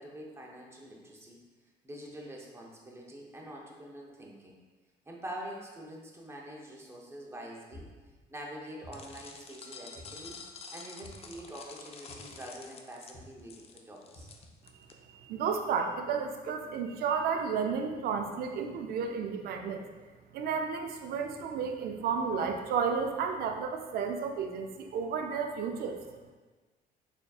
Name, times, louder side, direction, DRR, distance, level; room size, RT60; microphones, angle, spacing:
voice 1, 0.0-1.4 1.8-4.6 5.1-7.9 8.3-10.4 10.7-14.3 25.9-26.0, right 1 dB, 15° right, -1 dB, 0.7 m, -45 dB
sound 1, 7.7-8.2 8.8-9.3 10.0-10.4 11.0-11.4 12.1-12.5 13.1-13.4 14.2-14.5, left 1 dB, 55° left, 1.5 m, -51 dB
sound 2, 8.9-14.9, left 5 dB, 35° left, 0.4 m, -48 dB
voice 2, 15.3-19.8 20.3-26.0, right 6 dB, 65° right, 5 dB, 0.4 m, -32 dB
4.0 x 3.5 x 2.3 m, 1.3 s
cardioid pair, 110°, 17 cm